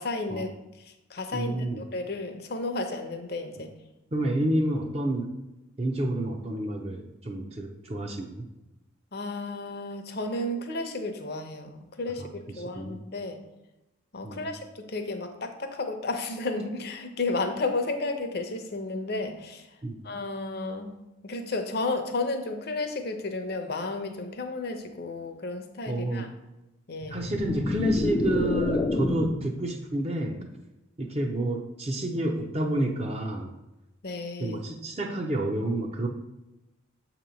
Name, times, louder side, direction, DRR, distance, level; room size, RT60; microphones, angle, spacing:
voice 1, 0.0-3.7 9.1-12.3 12.6-13.4 14.1-19.7 20.0-20.9 21.2-26.3 26.9-27.3 34.0-34.6, left 2 dB, 50° left, 6 dB, 0.7 m, -32 dB
voice 2, 1.3-1.8 4.1-5.3 5.8-8.5 12.7-13.0 14.2-14.5 19.8-20.0 25.9-26.3 27.1-30.5 31.0-33.5 34.4-36.1, right 1 dB, 30° right, 2 dB, 0.5 m, -29 dB
sound 1, 27.0-29.5, left 2 dB, 25° left, 0.3 m, -28 dB
7.3 x 3.0 x 5.1 m, 0.95 s
head